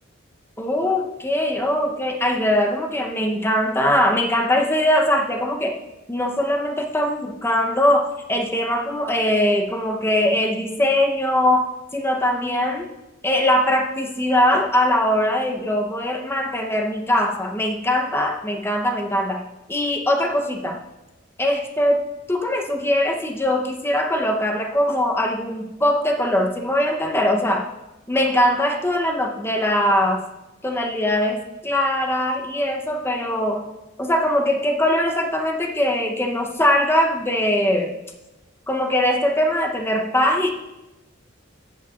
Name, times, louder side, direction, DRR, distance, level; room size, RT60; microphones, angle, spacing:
voice 1, 0.6-5.8 6.1-12.9 13.2-19.4 19.7-20.8 21.4-27.7 28.1-30.3 30.6-33.7 34.0-38.0 38.7-40.5, left 1 dB, 10° left, 2 dB, 0.8 m, -21 dB
14.5 x 8.4 x 2.5 m, 1.0 s
head